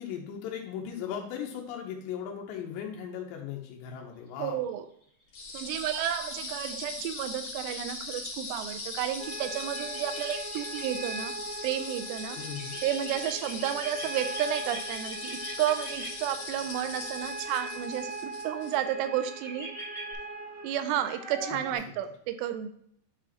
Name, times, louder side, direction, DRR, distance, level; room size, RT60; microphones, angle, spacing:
voice 1, 0.0-4.7 12.3-12.8 21.9-22.0, left 8 dB, 85° left, 1 dB, 3.0 m, -38 dB
voice 2, 4.4-4.9 5.5-11.3 11.6-12.4 12.8-19.7 20.6-22.7, right 10 dB, 85° right, 9 dB, 2.7 m, -32 dB
sound 1, 5.3-18.8, left 3 dB, 50° left, 2.3 m, -40 dB
sound 2, 9.2-21.8, right 2 dB, 55° right, 1.7 m, -41 dB
sound 3, 9.7-10.8 12.4-16.1 18.7-19.0 19.3-20.1, right 1 dB, 25° right, 0.6 m, -42 dB
9.2 x 4.9 x 2.9 m, 0.66 s
omnidirectional pair, 5.0 m